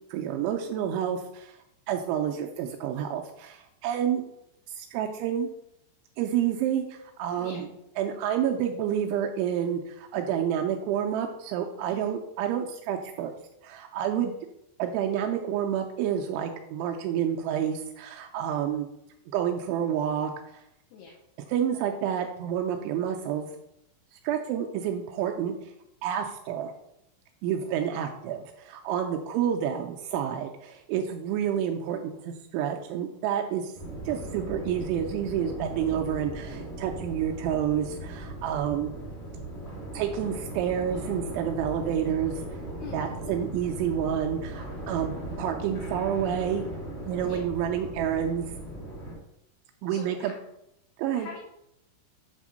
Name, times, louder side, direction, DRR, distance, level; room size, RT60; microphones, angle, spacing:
voice 1, 0.1-1.6 1.9-4.2 4.8-5.5 6.2-7.7 8.0-13.3 13.6-14.4 14.8-18.9 19.3-20.3 21.5-23.5 24.2-25.6 26.0-26.7 27.4-33.7 34.1-38.9 39.9-42.4 42.9-46.6 47.1-48.5 49.8-50.3 51.0-51.3, right 9 dB, 85° right, 3 dB, 2.7 m, -29 dB
voice 2, 11.8-12.2 20.9-21.2 42.8-43.2 47.2-47.4 49.9-50.3 51.1-51.4, left 5 dB, 75° left, -1 dB, 2.5 m, -44 dB
sound 1, 33.7-49.1, right 1 dB, 25° left, 1.3 m, -38 dB
8.4 x 3.6 x 6.2 m, 0.81 s
omnidirectional pair, 5.9 m